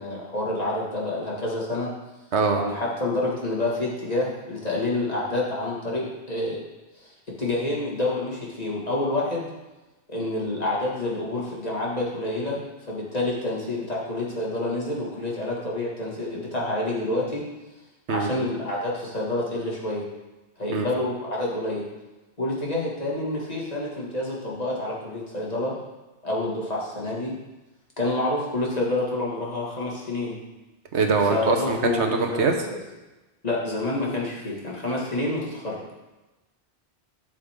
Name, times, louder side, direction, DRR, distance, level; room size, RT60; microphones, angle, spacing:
voice 1, 0.0-1.9 2.5-6.6 7.0-7.1 7.4-9.5 10.1-12.6 12.9-17.4 18.1-20.0 20.6-21.8 22.4-25.8 26.2-27.3 28.0-30.4 31.3-32.8 33.4-35.8, left 2 dB, 35° left, -4 dB, 2.2 m, -28 dB
voice 2, 2.3-2.6 18.1-18.3 20.7-20.8 30.9-32.5, right 4 dB, 80° right, 4 dB, 1.3 m, -23 dB
12.5 x 6.5 x 3.7 m, 1.1 s
omnidirectional pair, 1.1 m